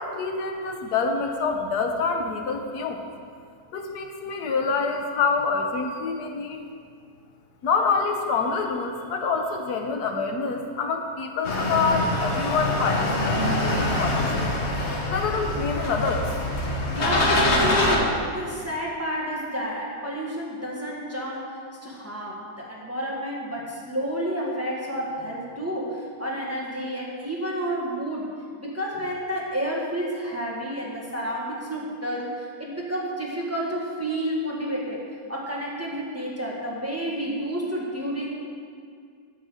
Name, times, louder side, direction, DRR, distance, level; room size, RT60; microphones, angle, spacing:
voice 1, 0.0-3.0 3.7-6.6 7.6-14.5 15.1-16.4, left 4 dB, 85° left, 4 dB, 1.4 m, -26 dB
sound 1, 11.4-18.0, left 1 dB, 50° left, 1.3 m, -24 dB
voice 2, 16.9-28.3 28.6-35.0 35.3-38.3, equal, 10° right, -4 dB, 1.4 m, -30 dB
9.0 x 5.8 x 7.7 m, 2.2 s
omnidirectional pair, 1.7 m